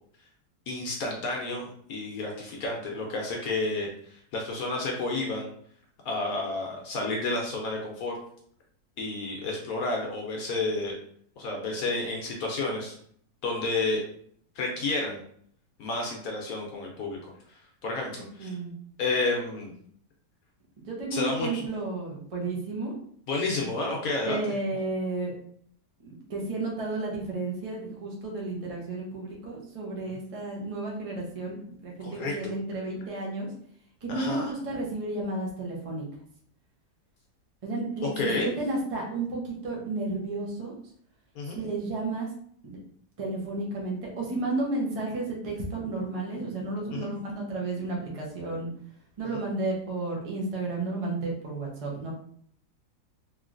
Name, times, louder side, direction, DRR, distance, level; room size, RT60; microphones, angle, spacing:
voice 1, 0.7-5.5 6.0-8.2 9.0-11.0 11.4-12.9 13.4-14.0 14.6-15.2 15.8-17.2 17.5-18.5 19.0-19.7 21.1-21.7 23.3-24.4 32.0-32.4 34.1-34.5 38.0-38.5 41.3-41.6 46.9-47.1, left 3 dB, 70° left, 0 dB, 1.0 m, -30 dB
voice 2, 18.4-18.7 20.8-23.0 24.3-25.3 26.0-33.5 34.0-36.0 37.6-40.7 41.5-42.3 42.6-42.8 43.2-48.7 49.2-52.1, right 2 dB, 35° right, -2 dB, 0.6 m, -32 dB
3.1 x 2.8 x 2.5 m, 0.63 s
omnidirectional pair, 1.7 m